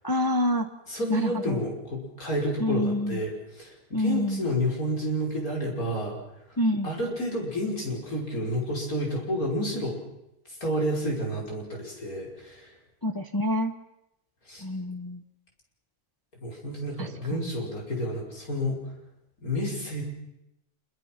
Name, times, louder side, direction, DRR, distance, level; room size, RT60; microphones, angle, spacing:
voice 1, 0.0-0.7 1.1-1.6 2.6-3.2 3.9-4.4 6.6-6.9 13.0-13.7 14.6-15.2 17.0-17.1, equal, 15° left, 6 dB, 0.9 m, -26 dB
voice 2, 0.9-6.2 6.8-10.0 10.6-12.7 14.5-14.6 16.4-18.8 19.4-20.0, equal, 70° left, -1 dB, 5.8 m, -30 dB
26.0 x 23.0 x 6.0 m, 0.86 s
omnidirectional pair, 1.6 m